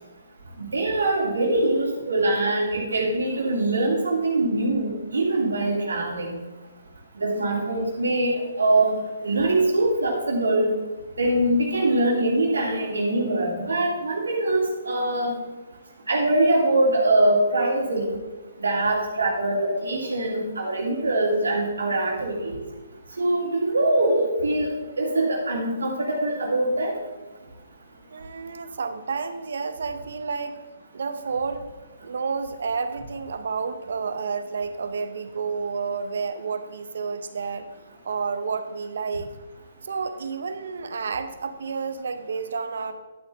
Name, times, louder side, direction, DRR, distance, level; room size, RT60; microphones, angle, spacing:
voice 1, 0.6-6.4 7.2-10.7 11.2-15.3 16.1-18.2 18.6-22.5 23.2-26.9, right 2 dB, 90° right, -1 dB, 2.8 m, -23 dB
voice 2, 28.1-30.6 30.9-31.7 32.0-37.7 38.0-39.3 39.8-42.9, right 5 dB, 70° right, 10 dB, 0.9 m, -30 dB
11.5 x 7.9 x 3.6 m, 1.2 s
hypercardioid pair, 145°, 0 cm